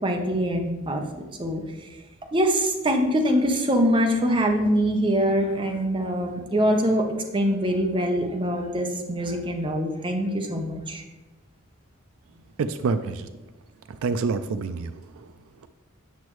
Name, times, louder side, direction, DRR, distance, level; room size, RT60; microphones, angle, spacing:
voice 1, 0.0-1.9 2.3-7.1 7.3-11.0, equal, 25° right, 2 dB, 0.8 m, -24 dB
voice 2, 12.6-13.3 14.0-14.9, right 4 dB, 80° right, 11 dB, 0.4 m, -26 dB
8.2 x 6.1 x 3.1 m, 1.1 s
head